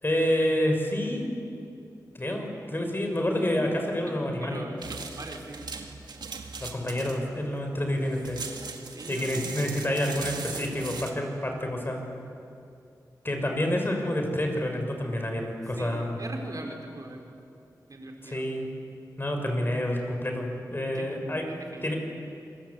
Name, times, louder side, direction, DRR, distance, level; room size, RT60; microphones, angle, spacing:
voice 1, 0.0-1.3 2.1-4.7 6.6-8.4 9.1-12.0 13.2-16.2 18.2-18.7 19.2-21.4 21.8-22.0, left 1 dB, 30° left, 3 dB, 5.8 m, -28 dB
voice 2, 4.1-5.8 8.9-9.4 15.8-17.2 17.9-18.5 20.9-21.1 21.5-22.0, right 2 dB, 55° right, 2 dB, 4.6 m, -41 dB
sound 1, 4.8-11.1, right 4 dB, 90° right, 1.9 m, -39 dB
27.0 x 22.0 x 8.5 m, 2.6 s
cardioid pair, 60°, 7 cm